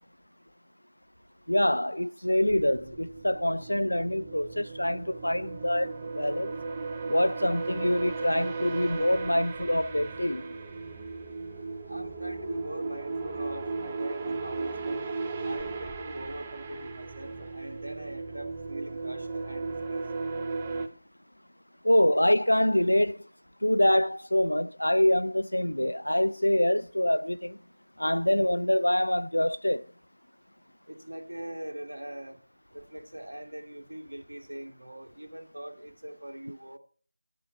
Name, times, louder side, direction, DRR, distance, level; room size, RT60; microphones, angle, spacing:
voice 1, 1.5-6.5 7.1-10.4 21.8-23.2 23.6-27.6 28.0-29.8, left 1 dB, 75° left, 0.5 m, -25 dB
Uneasy Drone & Ambiance, 2.5-20.9, right 3 dB, 15° right, 0.5 m, -36 dB
voice 2, 11.9-20.0 30.9-32.4 32.7-36.8, right 1 dB, 65° right, 1.7 m, -41 dB
9.3 x 8.6 x 4.3 m
figure-of-eight pair, 165°, 0 cm